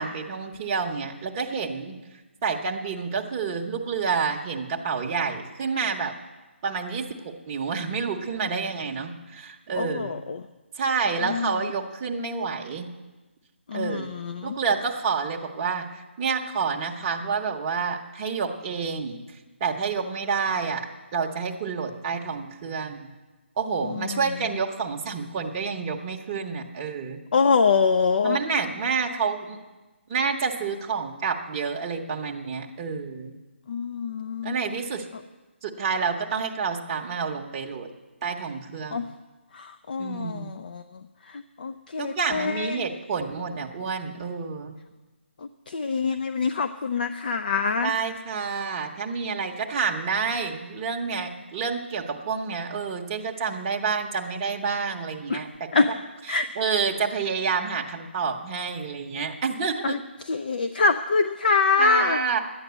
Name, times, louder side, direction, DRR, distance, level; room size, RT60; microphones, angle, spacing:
voice 1, 0.0-2.0 2.4-6.1 6.6-10.2 10.8-12.9 13.7-14.1 14.4-15.8 16.2-19.2 19.6-20.8 21.1-23.1 23.6-27.2 28.2-29.6 30.1-33.4 34.4-35.0 35.6-37.9 38.2-39.1 40.0-40.5 42.0-44.8 47.8-55.5 55.7-55.9 56.3-60.0 61.8-62.4, right 5 dB, 20° right, 0 dB, 0.9 m, -28 dB
voice 2, 9.7-10.4 11.2-11.6 13.7-14.6 23.8-24.2 27.3-28.4 33.7-34.6 38.9-39.0 39.5-40.8 41.3-42.8 45.7-47.9 55.3-55.4 55.7-55.9 56.3-56.5 59.8-60.0 60.3-62.2, left 4 dB, 45° left, 10 dB, 0.5 m, -25 dB
11.5 x 9.5 x 8.0 m, 1.2 s
hypercardioid pair, 165°, 7 cm